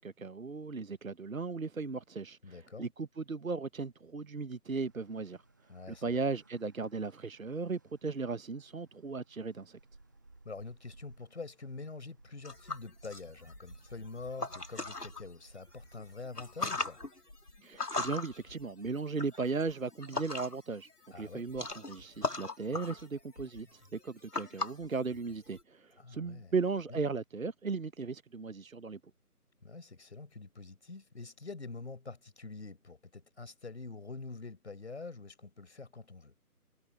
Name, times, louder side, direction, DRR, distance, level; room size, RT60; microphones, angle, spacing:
voice 1, 0.0-5.4 5.9-9.8 17.6-20.9 21.2-29.0, right 4 dB, 60° right, 1.0 m, -36 dB
voice 2, 2.4-2.9 5.7-6.2 10.4-17.0 21.1-21.5 26.0-26.5 26.9-27.0 29.6-36.3, left 3 dB, 45° left, 5.7 m, -46 dB
sound 1, 4.8-16.8, right 2 dB, 10° right, 1.4 m, -60 dB
sound 2, 12.4-15.2 15.7-20.8 21.0-25.6, left 3 dB, 80° left, 2.8 m, -39 dB
figure-of-eight pair, 160°, 47 cm